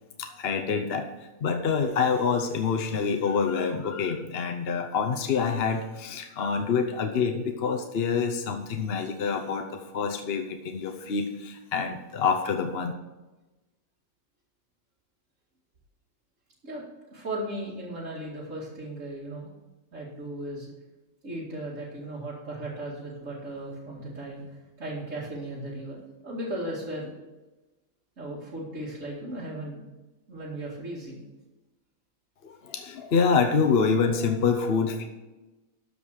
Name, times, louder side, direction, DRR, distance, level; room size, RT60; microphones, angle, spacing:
voice 1, 0.2-1.1 1.4-12.9 32.4-35.0, left 5 dB, 50° left, 5 dB, 0.9 m, -26 dB
voice 2, 17.1-19.5 19.9-20.7 21.2-27.2 28.2-29.8 30.3-31.2, right 1 dB, 55° right, -8 dB, 2.7 m, -36 dB
13.0 x 5.3 x 6.5 m, 1.1 s
omnidirectional pair, 1.6 m